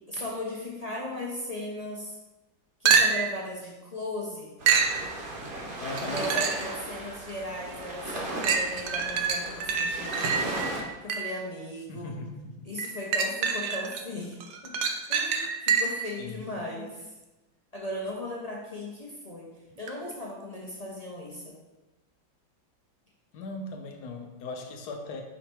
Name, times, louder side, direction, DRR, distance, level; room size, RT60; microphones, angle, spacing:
voice 1, 0.1-2.2 2.8-4.6 6.0-10.6 11.0-12.1 12.7-14.4 14.6-14.8 15.1-17.1 17.7-19.5 19.8-21.6, left 1 dB, 35° left, -4 dB, 0.6 m, -37 dB
sound 1, 2.9-3.4 4.7-5.0 6.0-6.7 7.3-7.4 8.4-11.4 12.8-14.0 14.4-16.1 19.9-20.0, right 6 dB, 70° right, 1.1 m, -26 dB
sound 2, 4.6-10.8, right 1 dB, 45° right, 0.7 m, -36 dB
voice 2, 5.8-6.2 11.9-12.7 16.2-16.5 23.3-25.2, left 3 dB, 65° left, 4 dB, 1.2 m, -39 dB
5.5 x 4.9 x 4.4 m, 1.1 s
omnidirectional pair, 2.1 m